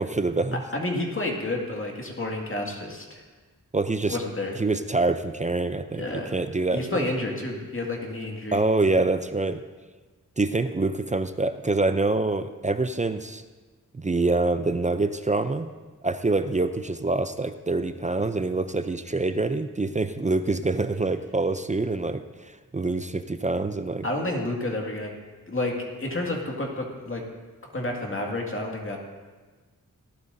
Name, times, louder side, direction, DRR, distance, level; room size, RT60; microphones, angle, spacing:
voice 1, 0.0-0.6 3.7-4.2 4.6-7.0 8.5-9.6 10.4-13.4 13.9-15.7 16.0-24.1, right 3 dB, 20° right, 9 dB, 0.5 m, -25 dB
voice 2, 0.7-3.2 4.0-4.5 6.0-6.3 6.7-8.6 24.0-25.1 25.5-27.2 27.7-29.0, left 2 dB, 40° left, 0 dB, 2.1 m, -30 dB
17.5 x 11.5 x 2.7 m, 1.4 s
wide cardioid pair, 75°, 33 cm